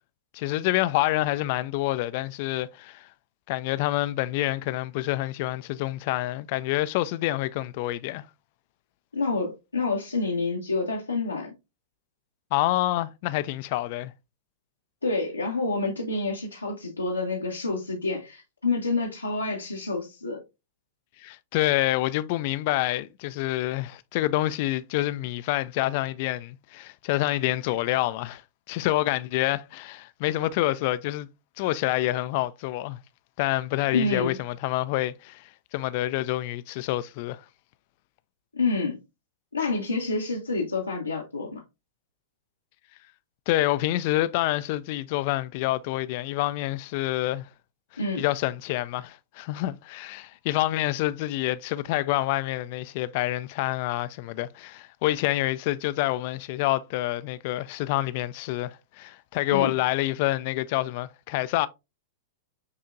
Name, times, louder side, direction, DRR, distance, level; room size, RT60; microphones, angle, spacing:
voice 1, 0.3-3.1 3.5-8.3 12.5-14.1 21.2-28.4 28.7-31.3 31.6-33.0 33.4-37.4 43.5-47.5 48.2-61.7, left 16 dB, 50° left, 0.3 m, -27 dB
voice 2, 9.1-11.5 15.0-20.4 33.9-34.4 38.5-39.0 39.5-41.6 48.0-48.2 59.5-59.7, left 3 dB, 90° left, 0.8 m, -28 dB
6.6 x 2.9 x 2.4 m
figure-of-eight pair, 100°, 0 cm